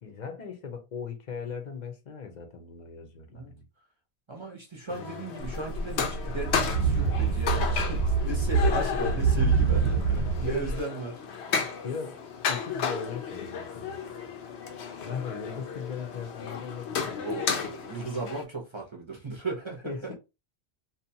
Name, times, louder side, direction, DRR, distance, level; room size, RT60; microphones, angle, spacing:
voice 1, 0.0-3.6 4.9-5.3 8.8-9.0 10.4-10.7 11.8-12.2 12.5-14.0 15.0-17.3 19.8-20.1, left 6 dB, 50° left, 0.7 m, -38 dB
voice 2, 4.3-11.2 17.2-20.1, right 3 dB, 30° right, 0.6 m, -36 dB
sound 1, 4.9-18.4, left 6 dB, 80° left, 0.9 m, -34 dB
sound 2, 5.4-10.8, right 4 dB, 85° right, 0.9 m, -26 dB
2.7 x 2.2 x 2.7 m
omnidirectional pair, 1.1 m